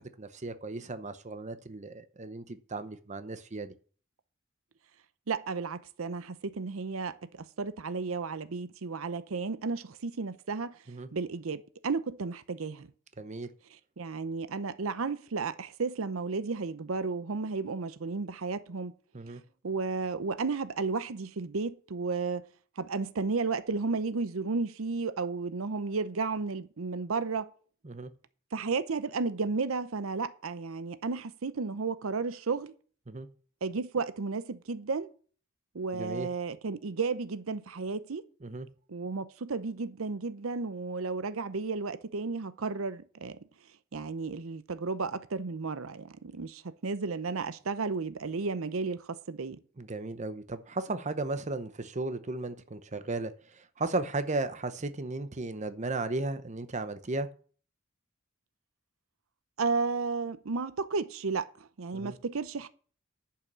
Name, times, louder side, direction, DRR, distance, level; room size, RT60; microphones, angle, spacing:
voice 1, 0.2-3.7 10.9-11.1 13.2-13.5 19.1-19.4 27.8-28.1 33.1-33.3 35.9-36.3 38.4-38.7 49.8-57.3 61.9-62.2, right 2 dB, 35° right, 0.8 m, -35 dB
voice 2, 5.3-10.7 11.1-12.9 14.0-18.9 19.6-22.4 22.8-27.5 28.5-32.7 33.6-35.1 35.7-38.2 38.9-43.4 43.9-49.6 59.6-61.5 61.8-62.7, right 4 dB, 85° right, 0.7 m, -33 dB
11.0 x 5.8 x 7.4 m
head